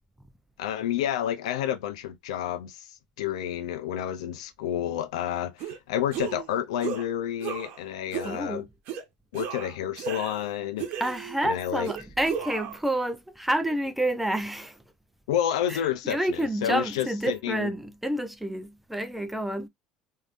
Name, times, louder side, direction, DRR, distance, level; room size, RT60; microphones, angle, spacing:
voice 1, 0.6-8.7 9.3-10.9 11.4-11.9 15.3-17.7, left 10 dB, 80° left, 0.5 m, -30 dB
sound 1, 5.6-5.8 6.1-6.5 6.8-7.1 7.4-7.8 8.1-8.4 8.9-9.0 9.3-10.5 10.8-11.4 11.8-12.8, right 8 dB, 65° right, 1.0 m, -34 dB
voice 2, 8.2-8.7 11.0-14.8 15.7-19.7, right 1 dB, 5° right, 0.7 m, -29 dB
3.2 x 2.8 x 2.5 m
hypercardioid pair, 80°, 3 cm